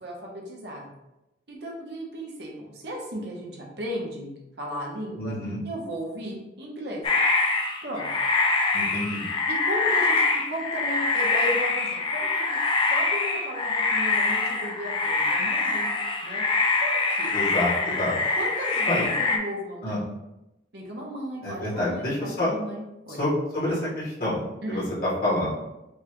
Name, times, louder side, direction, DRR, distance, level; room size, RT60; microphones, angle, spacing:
voice 1, 0.0-0.9 1.5-5.3 5.6-7.1 7.8-8.1 9.5-12.6 12.9-15.9 16.2-16.4 16.8-17.3 18.4-20.0 20.7-23.2 24.6-24.9, equal, 65° right, -2 dB, 1.0 m, -35 dB
voice 2, 5.2-5.6 8.7-9.3 17.3-18.1 18.9-19.0 19.8-20.0 21.4-22.5 23.1-25.5, left 1 dB, 50° left, -7 dB, 1.5 m, -28 dB
sound 1, 7.0-19.4, left 3 dB, 25° left, 0.4 m, -24 dB
5.4 x 2.5 x 3.0 m, 0.93 s
head